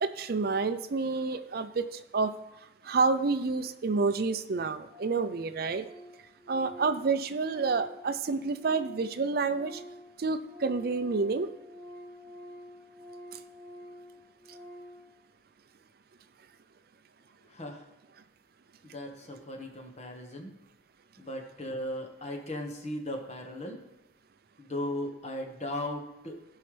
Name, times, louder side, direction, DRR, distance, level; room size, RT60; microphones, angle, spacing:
voice 1, 0.0-2.3 2.8-5.9 6.5-9.8 10.2-11.5, right 4 dB, 55° right, 11 dB, 0.5 m, -29 dB
Organ, 4.2-4.3 4.5-4.6 4.9-5.3 5.5-9.1 9.4-15.1, equal, 5° left, 3.8 m, -48 dB
voice 2, 17.5-17.9 18.8-20.5 21.2-23.8 24.6-26.4, left 1 dB, 35° left, 3 dB, 1.5 m, -37 dB
16.0 x 5.7 x 3.3 m, 0.98 s
head